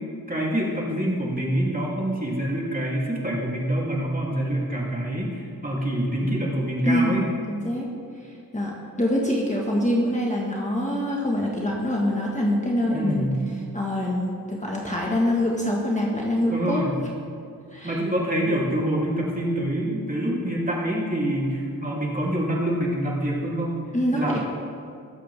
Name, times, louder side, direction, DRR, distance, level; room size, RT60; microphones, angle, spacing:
voice 1, 0.3-7.3 12.9-13.4 16.5-17.0 17.8-23.8 24.1-24.4, right 1 dB, 20° right, -4 dB, 3.1 m, -26 dB
voice 2, 6.9-7.9 8.2-16.8 17.7-18.0 23.9-24.4, left 1 dB, 20° left, -3 dB, 1.7 m, -25 dB
20.5 x 7.5 x 3.6 m, 2.3 s
cardioid pair, 50°, 38 cm